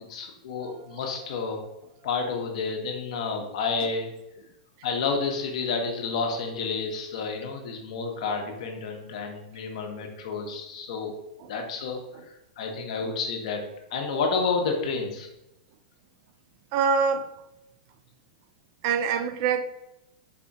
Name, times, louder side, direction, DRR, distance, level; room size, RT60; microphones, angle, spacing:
voice 1, 0.1-1.6 2.0-4.1 4.8-11.1 11.5-13.6 13.9-15.3, left 4 dB, 65° left, 0.9 m, -30 dB
voice 2, 16.7-17.3 18.8-19.6, right 6 dB, 45° right, 0.3 m, -24 dB
4.2 x 2.3 x 4.0 m
hypercardioid pair, 140°, 4 cm